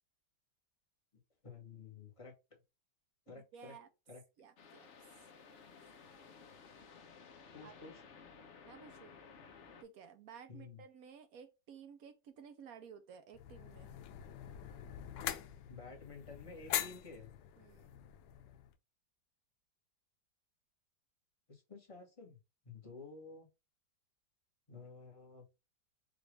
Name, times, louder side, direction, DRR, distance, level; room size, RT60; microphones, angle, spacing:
voice 1, 1.4-2.3 3.3-3.8 4.1-4.2 7.5-8.0 10.5-10.8 15.7-17.3 21.5-22.4 22.6-23.5 24.7-25.4, left 4 dB, 20° left, 1.1 m, -52 dB
voice 2, 3.3-3.9 4.4-4.9 5.2-5.3 5.8-5.9 7.6-7.7 8.6-9.1 9.8-13.9 17.6-17.9, right 7 dB, 65° right, 1.0 m, -55 dB
sound 1, 4.6-9.8, left 5 dB, 55° left, 0.9 m, -56 dB
sound 2, 13.3-18.7, left 11 dB, 90° left, 1.3 m, -43 dB
5.0 x 2.5 x 3.2 m
omnidirectional pair, 1.9 m